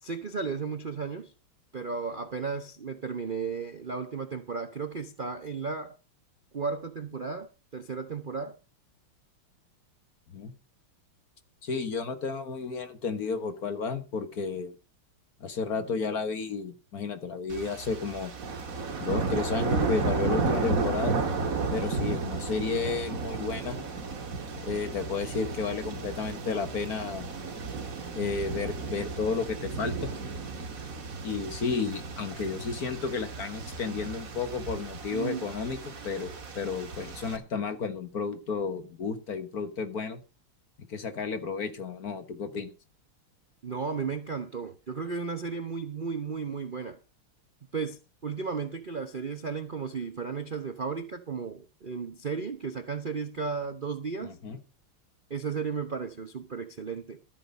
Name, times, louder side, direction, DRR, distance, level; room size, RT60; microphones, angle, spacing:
voice 1, 0.0-1.3 1.7-6.0 6.5-8.6 35.1-35.5 43.6-47.0 47.7-54.4 55.3-57.2, right 5 dB, 80° right, 0.4 m, -34 dB
voice 2, 11.6-14.8 15.4-18.3 19.0-21.2 21.7-23.8 24.6-27.3 28.2-30.1 31.2-40.2 40.9-42.7 54.2-54.6, left 5 dB, 45° left, 1.7 m, -32 dB
sound 1, 17.5-37.4, right 4 dB, 40° right, 1.9 m, -33 dB
13.0 x 8.7 x 5.4 m
omnidirectional pair, 2.4 m